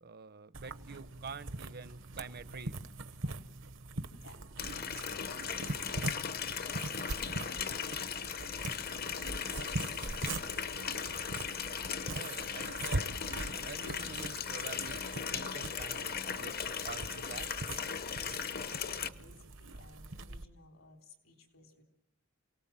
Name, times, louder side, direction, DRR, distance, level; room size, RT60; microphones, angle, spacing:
voice 1, 0.0-2.8 12.1-13.1 13.6-17.5, right 4 dB, 50° right, 13 dB, 0.9 m, -47 dB
sound 1, 0.5-20.5, right 2 dB, 70° right, 1.1 m, -42 dB
voice 2, 4.2-5.4 5.8-6.1 6.4-9.9 18.3-21.8, left 2 dB, 85° left, 3 dB, 3.7 m, -59 dB
Water tap faucet, 4.6-19.1, left 7 dB, 50° left, 0.9 m, -38 dB
28.5 x 18.5 x 7.5 m, 0.81 s
head